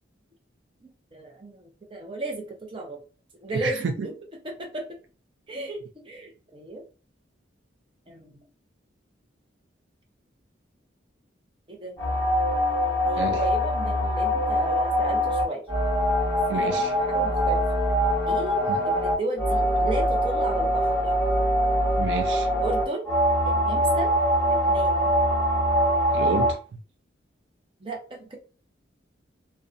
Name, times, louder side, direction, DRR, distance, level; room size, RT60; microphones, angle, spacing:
voice 1, 1.1-3.0 3.4-4.1 4.6-4.8 5.5-6.8 8.1-8.3 11.7-12.0 13.0-15.6 16.5-17.6 18.3-21.0 22.6-23.1 23.4-24.1 24.5-25.1 27.8-28.4, right 2 dB, 25° right, 0.6 m, -34 dB
voice 2, 3.5-3.9 13.2-13.5 16.5-16.9 18.7-18.9 22.0-22.5 26.1-26.8, right 4 dB, 65° right, 0.3 m, -30 dB
sound 1, 12.0-26.5, equal, 10° left, 1.1 m, -23 dB
2.5 x 2.2 x 2.4 m
head